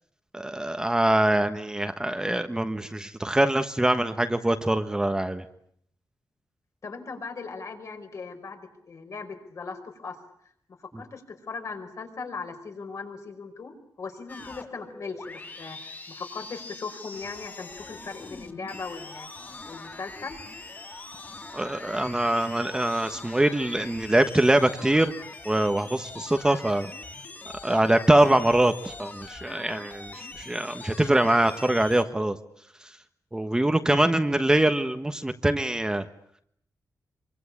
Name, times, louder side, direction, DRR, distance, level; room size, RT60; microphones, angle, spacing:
voice 1, 0.3-5.4 21.5-25.1 25.4-26.9 27.6-32.4 33.3-36.0, right 1 dB, 10° right, 8 dB, 1.3 m, -23 dB
voice 2, 6.8-10.2 11.0-19.3 19.7-20.4, left 4 dB, 55° left, 5 dB, 5.5 m, -38 dB
sound 1, 14.3-32.0, left 3 dB, 30° left, 3.8 m, -43 dB
26.5 x 24.5 x 8.7 m, 0.70 s
wide cardioid pair, 135°, 6 cm